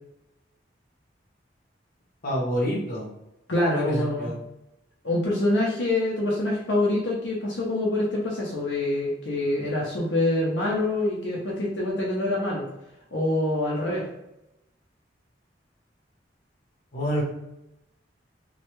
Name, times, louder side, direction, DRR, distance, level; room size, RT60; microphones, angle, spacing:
voice 1, 2.2-3.1 3.7-4.3 16.9-17.2, equal, 50° left, -5 dB, 1.0 m, -27 dB
voice 2, 3.5-4.3 5.0-12.7 13.1-14.0, left 1 dB, 75° left, -4 dB, 0.7 m, -25 dB
3.2 x 2.3 x 3.0 m, 0.88 s
head